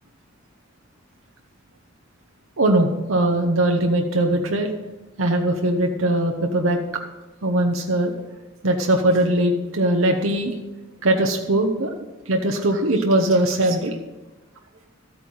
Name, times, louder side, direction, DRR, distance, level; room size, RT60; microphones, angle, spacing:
voice 1, 2.6-4.7 5.2-6.8 7.4-8.1 8.6-10.6 11.0-11.9 12.3-14.0, right 1 dB, 80° right, 3 dB, 1.1 m, -20 dB
14.0 x 9.1 x 5.5 m, 1.1 s
head